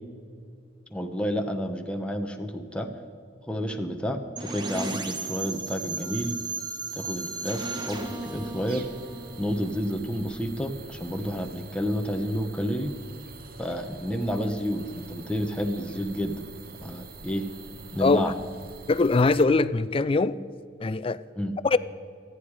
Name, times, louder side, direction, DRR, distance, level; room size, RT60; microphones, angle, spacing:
voice 1, 0.9-2.9 3.5-6.4 6.9-8.9 9.4-12.9 13.6-16.4 16.8-17.5 17.9-18.4 21.3-21.6, equal, 5° left, 1.1 m, -30 dB
sound 1, 4.4-10.2, right 3 dB, 25° right, 1.3 m, -35 dB
sound 2, 7.9-19.5, right 4 dB, 55° right, 1.0 m, -46 dB
voice 2, 18.9-20.4 20.8-21.2 21.6-21.8, left 3 dB, 30° left, 0.4 m, -21 dB
24.5 x 9.2 x 4.9 m
head